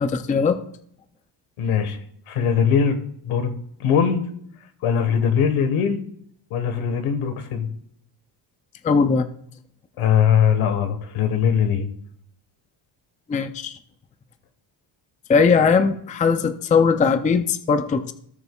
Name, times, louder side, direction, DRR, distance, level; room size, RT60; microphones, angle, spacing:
voice 1, 0.0-0.6 8.8-9.3 13.3-13.8 15.3-18.1, left 5 dB, 15° left, 10 dB, 0.4 m, -19 dB
voice 2, 1.6-2.0 2.3-3.0 3.2-3.5 3.8-4.2 4.8-6.0 6.5-7.7 10.0-11.9, left 7 dB, 85° left, 8 dB, 1.4 m, -20 dB
18.0 x 6.7 x 2.3 m, 0.68 s
cardioid pair, 160°, 49 cm